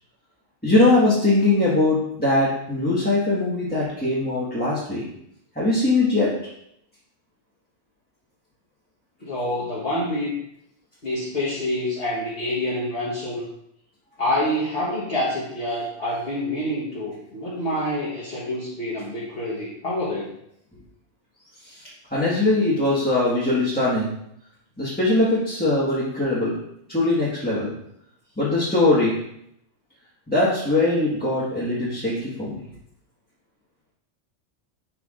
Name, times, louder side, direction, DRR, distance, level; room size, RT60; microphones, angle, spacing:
voice 1, 0.6-5.0 5.5-6.3 21.7-24.1 24.8-26.5 26.9-27.7 28.4-29.2 30.3-32.6, left 2 dB, 10° left, -9 dB, 1.5 m, -21 dB
voice 2, 9.2-10.3 11.0-13.5 14.2-20.3, left 1 dB, 55° left, -7 dB, 1.5 m, -27 dB
10.0 x 4.7 x 2.5 m, 0.74 s
omnidirectional pair, 1.2 m